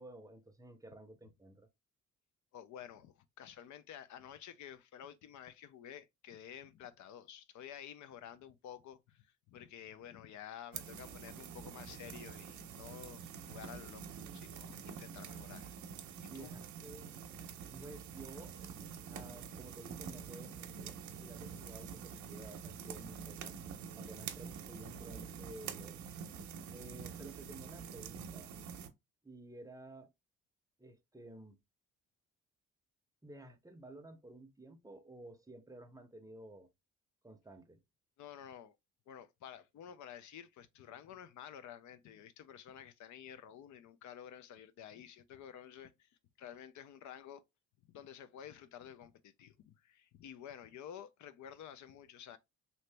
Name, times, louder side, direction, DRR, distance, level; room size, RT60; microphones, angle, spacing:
voice 1, 0.0-1.7 16.3-17.1 17.7-18.6 19.1-23.6 23.9-26.1 26.7-28.6 29.2-30.1 30.8-31.6 33.2-36.7 37.2-37.8, right 1 dB, 10° right, 0.6 m, -53 dB
voice 2, 2.5-15.7 16.2-16.5 17.0-17.2 38.2-38.7 39.1-46.1 46.4-47.4 47.9-52.4, left 9 dB, 75° left, 0.5 m, -51 dB
sound 1, 10.7-28.9, right 7 dB, 75° right, 0.7 m, -47 dB
3.0 x 2.7 x 3.3 m
cardioid pair, 90°, 30 cm